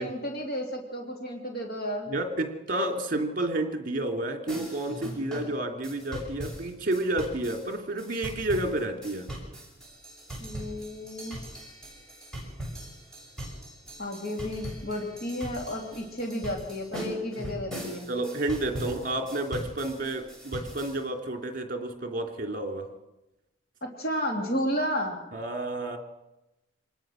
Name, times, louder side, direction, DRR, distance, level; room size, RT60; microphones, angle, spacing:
voice 1, 0.0-2.1 10.4-11.4 14.0-18.1 23.8-25.2, equal, 45° left, 1 dB, 2.9 m, -32 dB
voice 2, 2.1-9.3 18.1-22.9 25.3-26.0, right 1 dB, 45° right, 4 dB, 2.9 m, -30 dB
sound 1, 4.5-21.0, right 1 dB, 5° left, 6.2 m, -40 dB
26.0 x 19.5 x 6.4 m, 0.97 s
head